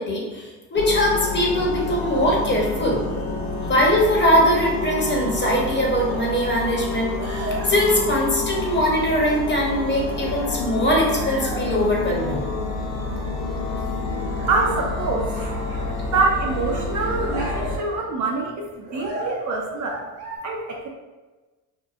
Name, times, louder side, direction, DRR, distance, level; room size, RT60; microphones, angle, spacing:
voice 1, 0.0-3.0 3.7-12.4, equal, 25° left, -2 dB, 0.8 m, -21 dB
sound 1, 0.8-17.8, left 3 dB, 80° left, 0.7 m, -28 dB
sound 2, 5.9-6.0 7.0-8.9 9.2-9.5 9.9-10.7 11.0-11.9 12.2-12.7 12.9-13.5 13.8-13.9 14.2-14.8 15.2-16.3 16.5-16.7 17.0-18.0 18.8-19.5 19.8-20.4, right 2 dB, 60° right, 1.2 m, -36 dB
voice 2, 14.5-15.3 16.1-20.0 20.4-20.9, right 3 dB, 40° right, -1 dB, 0.5 m, -25 dB
2.8 x 2.2 x 2.4 m, 1.2 s
supercardioid pair, 75°, 46 cm